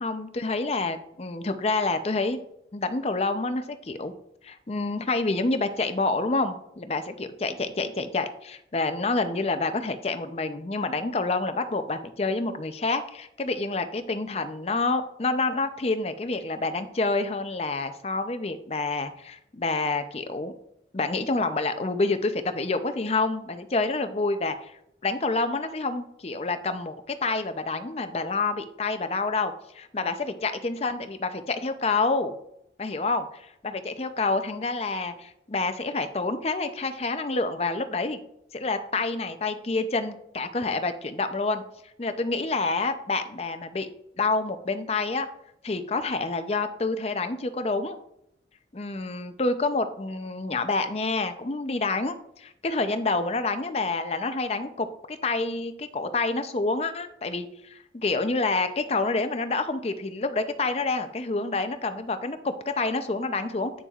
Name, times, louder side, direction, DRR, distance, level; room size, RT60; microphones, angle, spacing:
voice 1, 0.0-2.4 2.7-4.1 4.4-20.5 20.9-32.3 32.8-38.2 38.5-41.6 42.0-43.9 44.2-45.3 45.6-48.0 48.7-63.7, left 3 dB, 35° left, 9 dB, 0.6 m, -28 dB
8.6 x 6.9 x 2.4 m, 0.76 s
head